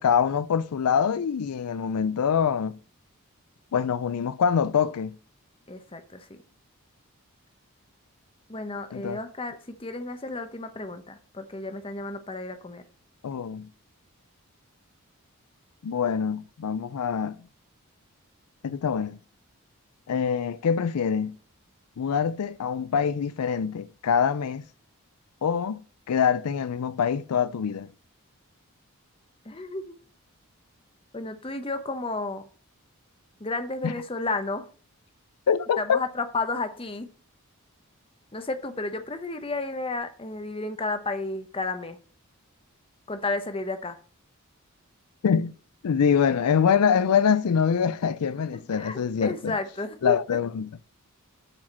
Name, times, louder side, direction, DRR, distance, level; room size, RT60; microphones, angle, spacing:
voice 1, 0.0-2.8 3.7-5.2 8.9-9.2 13.2-13.7 15.8-17.3 18.6-19.2 20.1-21.4 22.0-24.6 25.4-27.9 33.8-33.9 35.5-36.0 45.2-45.5 45.8-49.5 50.0-50.7, left 7 dB, 85° left, 0.4 m, -24 dB
voice 2, 5.7-6.4 8.5-12.8 29.4-29.9 31.1-32.5 33.4-34.7 35.8-37.1 38.3-42.0 43.1-44.0 48.5-50.4, left 3 dB, 25° left, 0.9 m, -32 dB
7.6 x 4.9 x 7.3 m
head